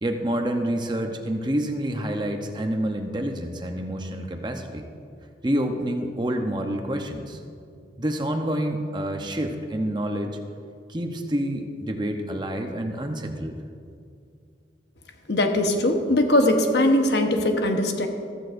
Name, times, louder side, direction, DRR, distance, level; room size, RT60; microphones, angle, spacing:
voice 1, 0.0-4.9 5.4-7.4 8.0-10.4 10.9-13.6, right 1 dB, 25° right, 4 dB, 0.7 m, -28 dB
voice 2, 15.3-18.1, left 1 dB, 70° left, 4 dB, 1.1 m, -21 dB
14.5 x 14.0 x 2.6 m, 2.4 s
head